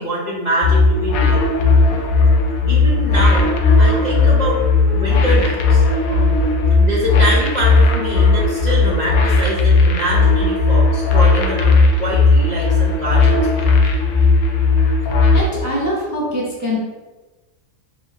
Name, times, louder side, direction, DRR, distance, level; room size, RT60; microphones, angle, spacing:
voice 1, 0.0-1.4 2.7-3.5 3.8-6.3 6.8-13.7, equal, 40° left, -7 dB, 0.6 m, -24 dB
sound 1, 0.6-15.4, left 3 dB, 75° left, 1.0 m, -15 dB
voice 2, 15.3-16.8, equal, 20° right, -6 dB, 0.6 m, -23 dB
3.9 x 3.6 x 2.6 m, 1.2 s
omnidirectional pair, 1.5 m